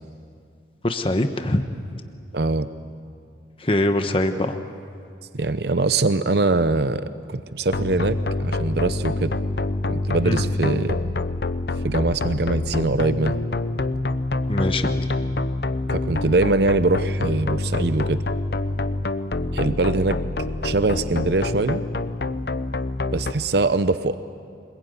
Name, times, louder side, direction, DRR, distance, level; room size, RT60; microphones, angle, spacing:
voice 1, 0.8-1.6 3.6-4.6 10.2-10.4 14.5-14.9, left 1 dB, 30° left, 7 dB, 1.2 m, -22 dB
voice 2, 2.3-2.7 5.3-9.3 9.9-11.0 11.8-13.4 15.9-18.2 19.5-20.2 20.6-21.8 23.1-24.1, right 3 dB, 60° right, 12 dB, 0.7 m, -22 dB
sound 1, 7.7-23.3, left 2 dB, 60° left, 0.8 m, -26 dB
26.0 x 21.5 x 9.5 m, 2.4 s
head